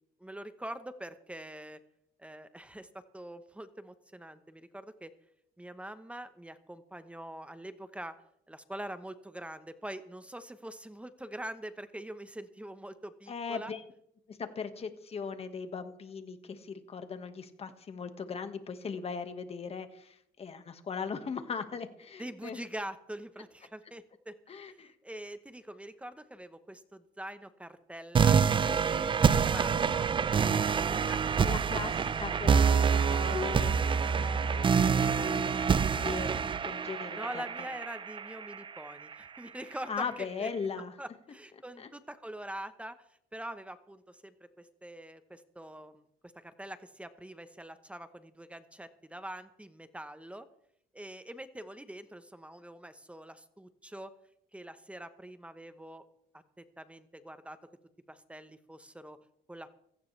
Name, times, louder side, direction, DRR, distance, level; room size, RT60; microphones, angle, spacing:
voice 1, 0.2-1.8 2.2-5.1 5.6-8.1 8.5-13.7 22.2-24.8 25.0-32.3 37.1-40.5 41.0-43.0 43.3-50.5 50.9-54.1 54.5-56.0 56.6-57.6 58.1-59.2 59.5-59.7, right 1 dB, 5° right, 11 dB, 1.0 m, -44 dB
voice 2, 13.3-13.8 14.3-22.6 24.5-24.9 31.4-36.3 36.6-37.4 39.9-40.9 41.8-41.9, left 5 dB, 35° left, 8 dB, 1.7 m, -39 dB
sound 1, 28.1-39.1, right 6 dB, 30° right, 0.6 m, -27 dB
17.0 x 15.0 x 3.3 m, 0.72 s
cardioid pair, 110°, 17 cm